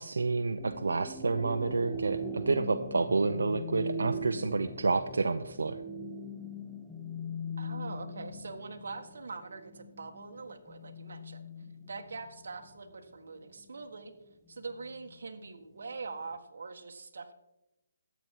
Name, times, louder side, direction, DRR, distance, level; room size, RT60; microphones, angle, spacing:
voice 1, 0.0-5.8, right 3 dB, 85° right, 8 dB, 0.6 m, -29 dB
sound 1, 0.6-12.9 13.3-16.3, equal, ahead, 0.6 m, -41 dB
voice 2, 7.6-14.1 14.5-17.3, right 4 dB, 65° right, 5 dB, 1.5 m, -43 dB
13.5 x 8.2 x 4.6 m, 0.93 s
hypercardioid pair, 175°, 0 cm